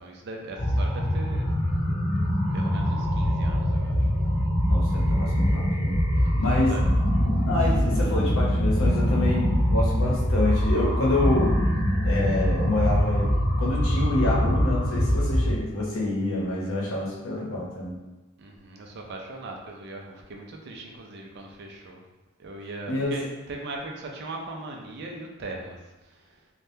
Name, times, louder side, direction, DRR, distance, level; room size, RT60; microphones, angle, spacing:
voice 1, 0.0-1.5 2.5-4.0 6.2-6.9 18.4-22.0 22.4-25.8, right 2 dB, 50° right, 1 dB, 0.4 m, -39 dB
sound 1, 0.6-15.5, equal, 25° left, 0.4 m, -23 dB
voice 2, 4.7-5.9 6.4-6.7 7.4-11.6 12.0-13.3 13.6-18.0 22.9-23.2, left 2 dB, 70° left, -3 dB, 0.8 m, -27 dB
3.4 x 2.1 x 2.7 m, 1.1 s
head